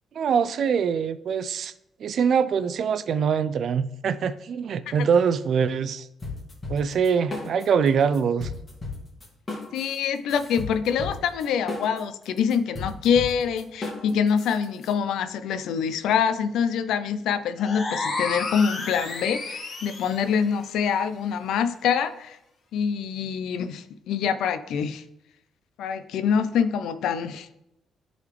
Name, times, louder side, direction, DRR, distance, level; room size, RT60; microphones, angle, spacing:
voice 1, 0.2-1.7 2.0-6.1 6.7-8.5, right 6 dB, 60° right, 0.4 m, -23 dB
sound 1, 6.2-7.9 8.1-14.9, left 3 dB, 30° left, 2.2 m, -35 dB
voice 2, 9.7-22.4 22.7-25.0 25.8-27.5, left 7 dB, 80° left, 0.5 m, -25 dB
sound 2, 17.6-20.3, left 3 dB, 45° left, 1.5 m, -31 dB
10.5 x 4.0 x 3.2 m
cardioid pair, 90°, 0 cm